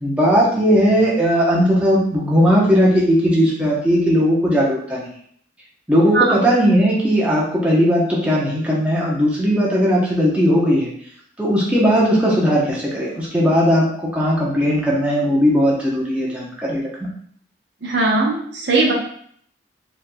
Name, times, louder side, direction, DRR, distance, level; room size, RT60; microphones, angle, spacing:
voice 1, 0.0-5.1 5.9-10.9 11.4-16.8, equal, 5° right, -5 dB, 0.8 m, -17 dB
voice 2, 17.8-18.9, right 3 dB, 70° right, -1 dB, 0.8 m, -18 dB
4.4 x 3.2 x 2.2 m, 0.62 s
head